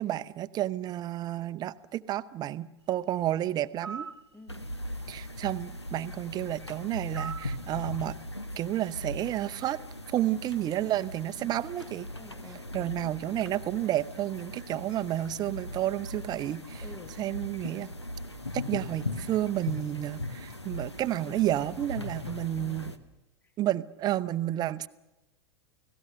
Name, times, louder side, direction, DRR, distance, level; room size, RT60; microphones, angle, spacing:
voice 1, 0.0-4.1 5.1-8.2 8.6-9.8 10.1-12.1 12.7-16.8 17.2-17.9 18.5-22.9 23.6-24.9, right 13 dB, 30° right, 14 dB, 0.7 m, -31 dB
sound 1, 3.8-4.2 7.1-7.6, right 5 dB, 85° right, 1.1 m, -39 dB
voice 2, 4.3-4.7 11.4-11.6 12.1-12.9 16.8-17.2 21.2-21.8 22.6-22.9 23.4-23.5, left 2 dB, 15° left, 12 dB, 1.2 m, -50 dB
sound 2, 4.5-23.0, left 1 dB, 90° left, 1.2 m, -39 dB
29.5 x 17.5 x 6.7 m, 1.0 s
figure-of-eight pair, 90°, 14 cm